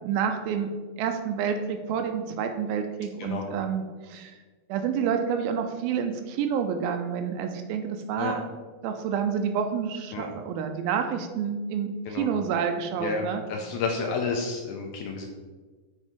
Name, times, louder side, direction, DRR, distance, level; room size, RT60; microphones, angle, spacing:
voice 1, 0.0-4.4 4.7-8.5 8.8-13.4, right 7 dB, 85° right, 6 dB, 2.4 m, -29 dB
voice 2, 13.5-15.3, left 4 dB, 80° left, 2 dB, 1.8 m, -30 dB
7.4 x 4.5 x 5.1 m, 1.4 s
omnidirectional pair, 4.3 m